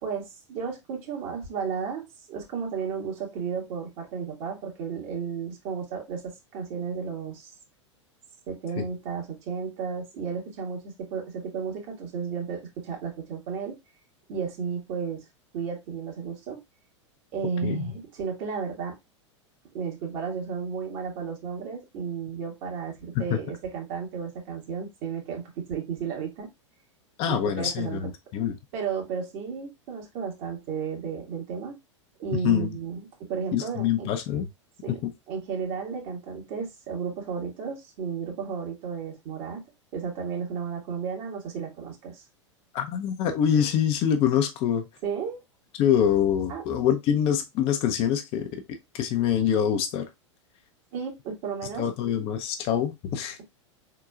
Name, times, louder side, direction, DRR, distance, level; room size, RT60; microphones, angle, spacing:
voice 1, 0.0-7.5 8.5-13.8 14.3-15.2 15.5-16.6 17.3-19.0 19.7-26.5 27.3-28.1 28.7-31.8 32.2-34.1 34.8-35.0 35.3-39.6 39.9-42.2 45.0-45.4 46.5-46.6 50.9-51.9, right 6 dB, 45° right, 1.8 m, -33 dB
voice 2, 27.2-28.6 32.3-32.8 33.5-34.5 34.9-35.1 42.7-44.9 45.8-48.5 48.9-50.1 51.8-53.4, left 9 dB, 40° left, 0.7 m, -25 dB
4.6 x 3.9 x 2.4 m
figure-of-eight pair, 90°, 16 cm